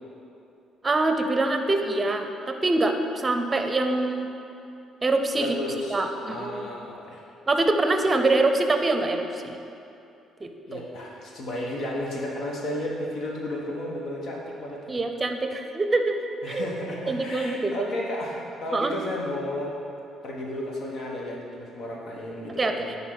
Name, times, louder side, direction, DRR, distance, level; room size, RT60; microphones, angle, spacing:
voice 1, 0.8-4.3 5.0-5.5 5.9-6.7 7.5-9.6 10.4-10.9 14.9-16.7 17.1-17.9 18.7-18.9 22.6-22.7, right 2 dB, 25° right, 6 dB, 0.6 m, -25 dB
voice 2, 5.4-6.0 6.3-7.2 10.7-15.0 16.4-19.7 20.2-22.8, left 1 dB, 65° left, -2 dB, 1.2 m, -33 dB
10.0 x 3.6 x 4.1 m, 2.8 s
supercardioid pair, 70°, 0 cm